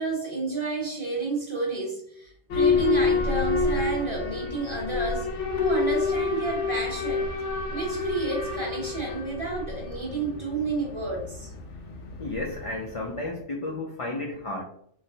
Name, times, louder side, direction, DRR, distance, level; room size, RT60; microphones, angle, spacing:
voice 1, 0.0-5.3 5.6-7.3 7.7-11.5, right 3 dB, 30° right, 0.9 m, -30 dB
Boat Water vehicle / Alarm, 2.5-13.2, left 4 dB, 90° left, 0.9 m, -28 dB
voice 2, 12.2-14.6, left 2 dB, 60° left, 0.3 m, -32 dB
3.9 x 2.1 x 2.6 m
omnidirectional pair, 1.2 m